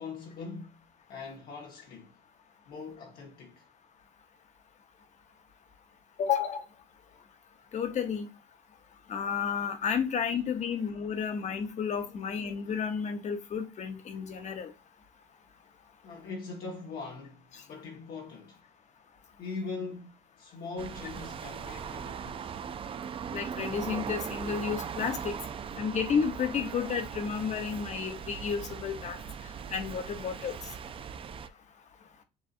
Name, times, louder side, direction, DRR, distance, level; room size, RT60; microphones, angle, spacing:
voice 1, 0.0-2.2 2.7-3.7 10.7-10.8 16.0-18.6 19.4-22.6 30.2-30.4, left 4 dB, 65° left, 1.2 m, -42 dB
voice 2, 6.2-6.6 7.7-8.3 9.1-14.7 23.3-25.3 25.8-29.2 29.7-30.6, left 7 dB, 45° left, 0.9 m, -31 dB
sound 1, 20.8-31.5, right 7 dB, 35° right, 0.3 m, -39 dB
7.1 x 2.6 x 2.5 m
cardioid pair, 110°, 17 cm